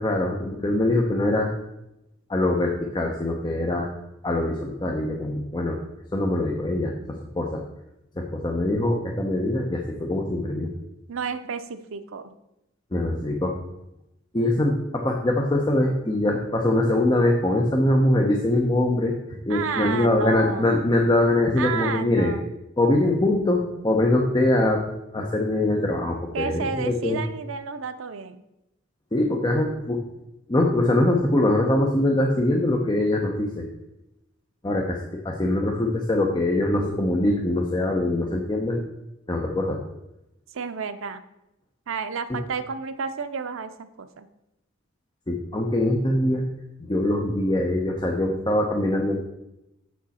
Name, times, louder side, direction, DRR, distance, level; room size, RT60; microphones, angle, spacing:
voice 1, 0.0-1.5 2.3-3.9 4.2-5.8 6.1-6.9 7.3-7.6 8.2-10.7 12.9-13.5 14.3-22.3 22.8-24.8 25.1-27.2 29.1-30.0 30.5-33.6 34.6-38.8 39.3-39.8 42.3-42.4 45.3-46.4 46.8-49.2, left 1 dB, 20° left, 1 dB, 0.7 m, -23 dB
voice 2, 11.1-12.3 19.5-20.7 21.6-22.5 26.3-28.4 40.5-41.2 41.9-44.3, right 5 dB, 75° right, 10 dB, 0.6 m, -31 dB
6.9 x 6.4 x 4.2 m, 0.90 s
head